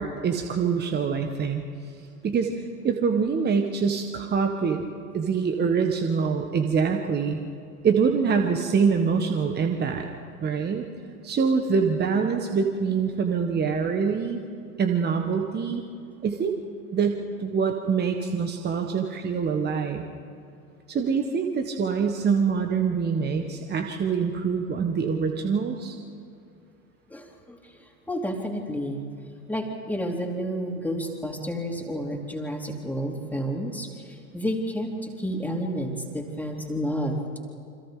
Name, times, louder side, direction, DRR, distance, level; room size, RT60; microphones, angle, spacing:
voice 1, 0.0-1.6 2.2-4.9 5.1-7.4 7.8-10.1 10.4-10.9 11.2-14.4 14.8-15.8 16.2-16.5 16.9-20.1 20.9-26.0, right 5 dB, 20° right, 4 dB, 1.5 m, -25 dB
voice 2, 27.1-29.0 29.5-34.9 35.2-37.4, equal, 5° left, 0 dB, 3.4 m, -30 dB
29.0 x 25.5 x 3.9 m, 2.5 s
figure-of-eight pair, 90°, 46 cm